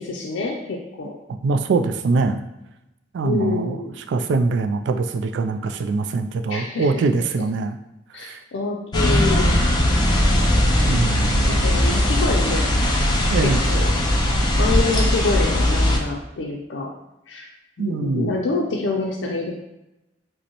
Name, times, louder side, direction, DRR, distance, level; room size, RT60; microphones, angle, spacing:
voice 1, 0.0-1.1 3.2-3.9 6.5-7.0 8.1-9.6 10.2-10.9 11.5-12.7 13.4-13.9 14.6-16.9 17.3-17.5 17.8-19.5, left 3 dB, 85° left, 0 dB, 0.4 m, -27 dB
voice 2, 1.3-2.4 3.1-7.8 8.1-8.4 10.9-11.5 13.3-13.7 17.8-18.3, right 3 dB, 75° right, 8 dB, 0.3 m, -23 dB
sound 1, 8.9-16.0, left 1 dB, 25° left, 0.5 m, -19 dB
5.1 x 2.1 x 2.9 m, 0.92 s
head